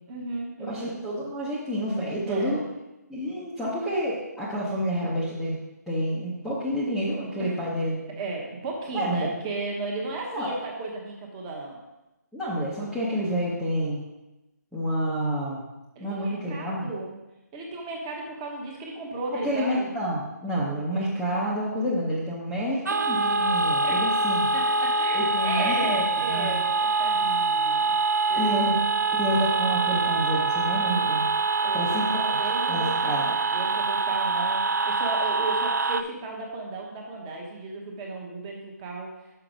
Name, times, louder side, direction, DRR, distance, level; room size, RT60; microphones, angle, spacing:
voice 1, 0.1-0.9 2.3-2.6 7.4-7.5 8.2-11.8 16.0-17.2 17.5-19.9 23.8-24.1 24.5-28.0 28.3-28.7 31.6-32.0 32.3-39.1, right 3 dB, 15° right, 0 dB, 1.0 m, -34 dB
voice 2, 0.6-2.6 3.1-5.6 5.9-8.1 8.9-9.3 10.3-10.5 12.3-14.0 14.7-15.6 16.0-16.9 19.4-24.5 25.1-26.0 26.3-26.6 28.3-28.7 29.1-31.3 31.7-32.4 32.7-33.2, equal, ahead, -12 dB, 0.7 m, -29 dB
sound 1, 22.9-36.0, right 3 dB, 75° right, 0.5 m, -25 dB
5.8 x 5.8 x 5.0 m, 0.98 s
figure-of-eight pair, 160°, 10 cm